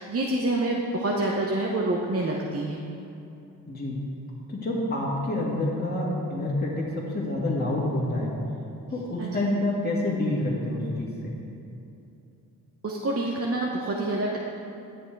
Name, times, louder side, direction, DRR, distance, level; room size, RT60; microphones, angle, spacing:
voice 1, 0.0-2.8 9.2-9.3 12.8-14.4, right 2 dB, 35° right, -2 dB, 1.0 m, -27 dB
voice 2, 3.7-4.0 4.5-8.3 8.9-11.4, left 1 dB, 25° left, -6 dB, 2.0 m, -28 dB
9.2 x 7.1 x 4.6 m, 2.8 s
supercardioid pair, 55°, 39 cm